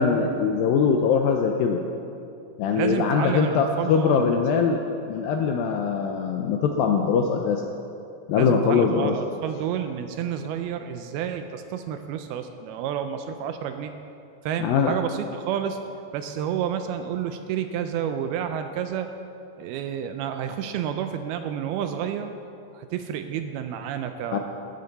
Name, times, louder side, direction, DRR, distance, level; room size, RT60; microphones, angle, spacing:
voice 1, 0.0-1.8 2.6-4.8 5.1-7.6 8.3-9.1 14.6-15.0 24.3-24.4, left 6 dB, 80° left, 3 dB, 2.1 m, -22 dB
voice 2, 2.8-4.4 8.3-13.9 14.4-15.8 16.1-19.1 19.6-22.3 22.7-24.4, right 9 dB, 80° right, 7 dB, 2.4 m, -30 dB
14.5 x 13.5 x 4.1 m, 2.7 s
omnidirectional pair, 4.7 m